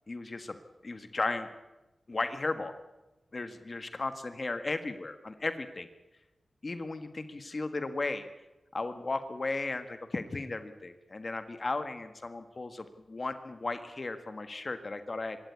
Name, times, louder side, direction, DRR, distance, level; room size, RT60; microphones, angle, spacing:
voice 1, 0.1-0.6 0.8-1.5 2.1-2.7 3.3-5.9 6.6-8.3 8.7-15.4, left 3 dB, 45° left, 9 dB, 1.6 m, -35 dB
25.5 x 13.5 x 9.6 m, 1.0 s
wide cardioid pair, 75°, 0 cm